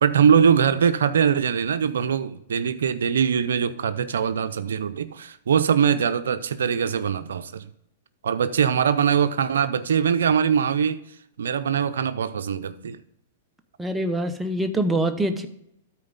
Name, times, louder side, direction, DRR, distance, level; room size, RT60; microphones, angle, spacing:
voice 1, 0.0-7.7 8.2-11.0 11.4-13.0, right 7 dB, 85° right, 0.5 m, -22 dB
voice 2, 13.8-15.5, right 1 dB, 5° right, 0.8 m, -24 dB
13.0 x 4.5 x 3.9 m
hypercardioid pair, 130°, 0 cm